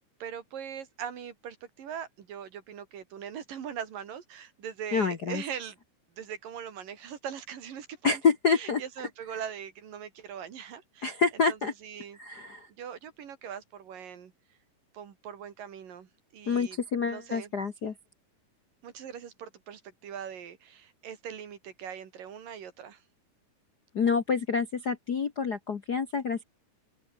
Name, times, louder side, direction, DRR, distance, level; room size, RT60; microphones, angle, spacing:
voice 1, 0.2-5.8 6.2-8.2 8.5-11.2 11.5-12.2 12.8-14.3 14.9-16.8 17.1-17.5 18.8-23.0, right 8 dB, 85° right, 4.3 m, -41 dB
voice 2, 4.9-5.4 8.0-8.8 11.0-11.7 12.2-12.7 16.5-17.9 23.9-26.4, left 5 dB, 55° left, 1.1 m, -27 dB
open air
omnidirectional pair, 3.8 m